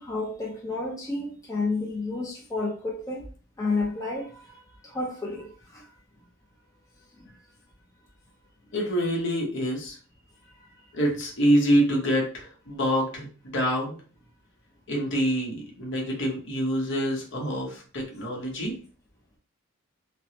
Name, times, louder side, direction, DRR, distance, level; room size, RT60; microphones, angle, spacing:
voice 1, 0.0-3.3 3.6-5.9 7.1-7.4 10.5-10.7, left 3 dB, 15° left, -2 dB, 0.5 m, -31 dB
voice 2, 8.7-10.0 10.9-14.0 14.9-18.8, equal, 60° left, -1 dB, 1.0 m, -26 dB
3.3 x 2.0 x 2.9 m, 0.40 s
head